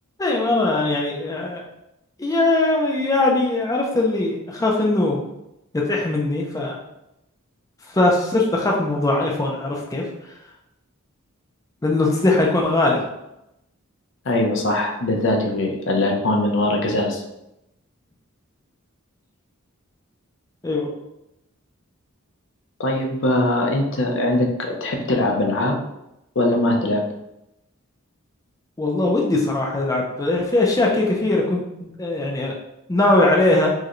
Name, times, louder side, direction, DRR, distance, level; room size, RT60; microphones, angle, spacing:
voice 1, 0.2-1.7 2.2-5.2 5.7-6.8 7.9-10.3 11.8-13.0 20.6-20.9 28.8-32.6 32.9-33.7, left 2 dB, 15° left, -2 dB, 0.4 m, -20 dB
voice 2, 14.2-17.2 22.8-25.8 26.4-27.0, left 1 dB, 60° left, 1 dB, 0.6 m, -21 dB
4.6 x 2.2 x 3.0 m, 0.88 s
head